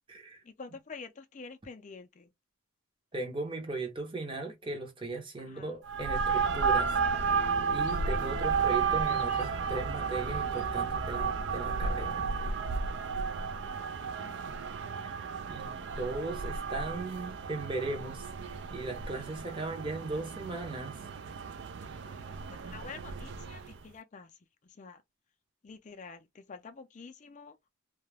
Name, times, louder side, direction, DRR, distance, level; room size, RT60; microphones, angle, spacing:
voice 1, 0.4-2.3 5.4-5.8 14.0-14.7 16.9-17.1 21.9-25.0 25.6-27.6, left 4 dB, 35° left, 0.4 m, -48 dB
voice 2, 3.1-7.0 7.7-12.2 15.0-15.1 15.5-21.0, right 2 dB, 25° right, 0.7 m, -37 dB
sound 1, 5.8-23.8, right 5 dB, 55° right, 0.3 m, -33 dB
sound 2, 6.4-12.5, left 2 dB, 60° left, 0.7 m, -42 dB
2.3 x 2.1 x 3.2 m
head